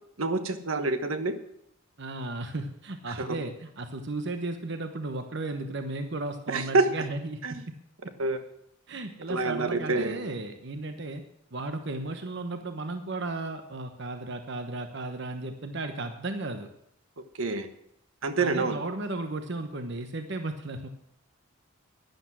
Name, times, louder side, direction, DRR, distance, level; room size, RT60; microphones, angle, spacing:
voice 1, 0.2-1.4 3.2-3.4 6.5-6.8 7.4-7.5 8.2-8.4 9.3-10.2 17.3-17.7 18.2-18.8, right 3 dB, 80° right, 9 dB, 1.3 m, -27 dB
voice 2, 2.0-7.8 8.9-11.2 11.5-16.7 18.4-20.9, right 2 dB, 55° right, 7 dB, 1.0 m, -35 dB
12.0 x 10.5 x 6.1 m, 0.75 s
head